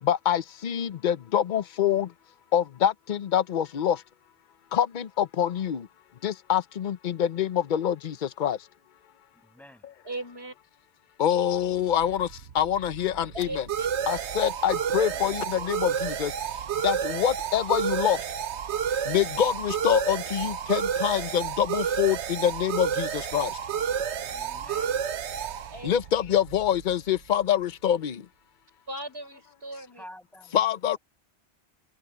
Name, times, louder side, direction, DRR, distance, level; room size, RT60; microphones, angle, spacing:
voice 1, 0.0-2.1 2.5-4.0 4.7-5.9 6.2-8.7 11.2-13.7 14.1-16.3 16.7-18.2 18.9-23.6 25.8-28.3 30.5-31.0, left 10 dB, 50° left, 0.8 m, -26 dB
voice 2, 9.3-9.9 15.0-15.6 24.3-25.0 29.9-30.6 30.9-31.0, equal, ahead, 7.4 m, -50 dB
voice 3, 10.0-10.5 13.3-13.9 23.8-24.3 25.7-26.0 28.9-30.0, right 1 dB, 65° right, 6.5 m, -39 dB
sound 1, 11.8-27.2, right 8 dB, 90° right, 1.1 m, -31 dB
omnidirectional pair, 1.1 m